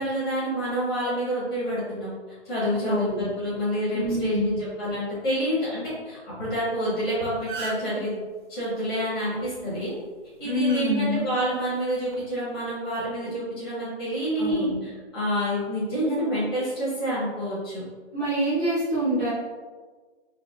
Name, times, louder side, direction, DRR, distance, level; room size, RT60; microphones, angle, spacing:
voice 1, 0.0-2.1 2.4-8.2 8.5-9.9 10.4-17.8, equal, 20° left, -10 dB, 1.2 m, -28 dB
voice 2, 2.8-3.3 3.9-4.6 10.4-11.2 14.4-14.8 18.1-19.3, equal, 5° left, -17 dB, 0.6 m, -26 dB
sound 1, 6.9-7.0 7.3-8.0 9.6-9.8 10.7-10.9 11.9-12.1, right 4 dB, 45° right, 0.7 m, -35 dB
4.8 x 2.2 x 2.3 m, 1.4 s
hypercardioid pair, 165°, 35 cm